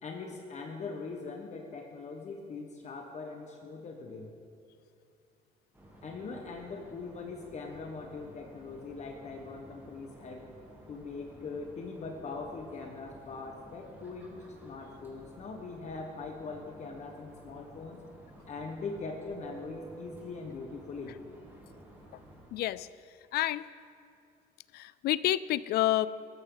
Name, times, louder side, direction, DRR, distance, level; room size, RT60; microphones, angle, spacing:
voice 1, 0.0-4.3 6.0-10.4 10.9-18.0 18.5-21.2, left 4 dB, 45° left, 2 dB, 1.2 m, -41 dB
sound 1, 5.7-22.5, right 2 dB, 10° right, 3.0 m, -53 dB
voice 2, 22.5-22.9 23.3-23.7 24.7-26.1, left 15 dB, 70° left, 18 dB, 0.4 m, -28 dB
14.0 x 14.0 x 3.9 m, 2.5 s
cardioid pair, 110°, 17 cm